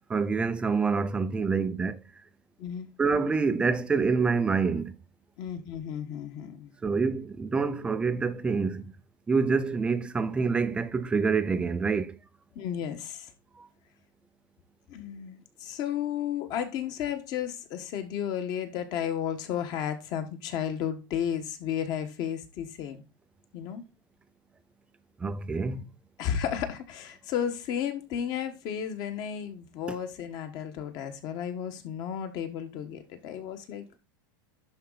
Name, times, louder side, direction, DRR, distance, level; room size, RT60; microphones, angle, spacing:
voice 1, 0.1-2.0 3.0-5.0 6.8-8.9 9.3-12.2 13.6-13.7 25.2-25.8, right 4 dB, 10° right, 0.5 m, -26 dB
voice 2, 5.4-6.7 12.5-13.3 14.9-23.0 23.5-23.8 26.2-34.0, left 9 dB, 35° left, 1.4 m, -33 dB
11.5 x 4.4 x 4.0 m
supercardioid pair, 165°, 12 cm